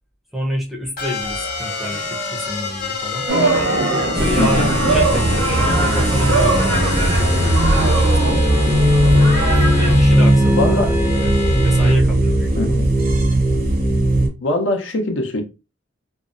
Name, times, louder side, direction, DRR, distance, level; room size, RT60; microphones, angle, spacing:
voice 1, 0.3-3.3 4.2-9.2 9.8-12.8, equal, ahead, 0.5 m, -28 dB
sound 1, 1.0-11.9, left 3 dB, 45° left, 0.8 m, -27 dB
sound 2, 3.3-9.9, right 2 dB, 80° right, 0.9 m, -21 dB
sound 3, 4.2-14.3, right 1 dB, 50° right, 0.6 m, -17 dB
voice 2, 4.4-4.7 10.6-10.9 12.6-12.9 14.4-15.4, left 2 dB, 75° left, 0.5 m, -21 dB
2.6 x 2.0 x 2.4 m
head